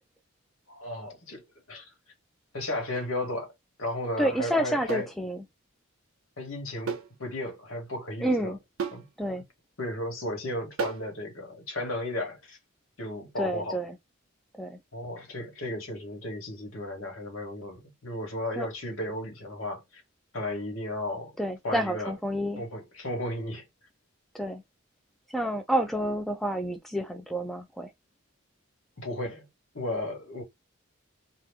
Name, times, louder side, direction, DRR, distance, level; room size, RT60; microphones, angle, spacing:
voice 1, 0.7-1.4 1.7-1.9 2.5-3.5 3.8-5.1 6.4-8.6 8.9-9.0 9.8-12.6 13.0-13.8 14.9-20.0 20.3-21.3 21.6-22.1 22.6-23.6 29.0-29.4 29.7-30.4, left 1 dB, 80° left, 1.4 m, -34 dB
sound 1, 2.9-3.1 4.9-5.1 6.9-7.2 7.5-7.6 8.8-9.1 10.8-11.1, right 5 dB, 90° right, 0.6 m, -34 dB
voice 2, 4.2-5.4 8.2-8.6 9.2-9.4 13.4-13.9 14.6-14.8 18.6-18.7 21.4-22.6 24.3-24.6 25.3-27.9, right 1 dB, ahead, 0.3 m, -29 dB
2.9 x 2.4 x 3.3 m
head